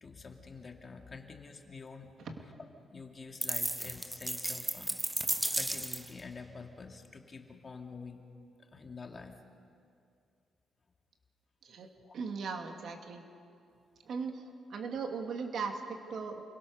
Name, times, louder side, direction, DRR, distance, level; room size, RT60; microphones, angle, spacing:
voice 1, 0.0-2.1 2.4-5.0 5.5-8.2 8.6-9.3 12.0-12.2, left 4 dB, 30° left, 3 dB, 2.2 m, -47 dB
sound 1, 3.4-6.2, right 1 dB, 5° right, 0.5 m, -34 dB
voice 2, 12.1-13.2 14.0-14.4 14.7-16.4, right 5 dB, 60° right, 4 dB, 2.5 m, -38 dB
28.5 x 23.0 x 6.6 m, 2.4 s
cardioid pair, 130°, 0 cm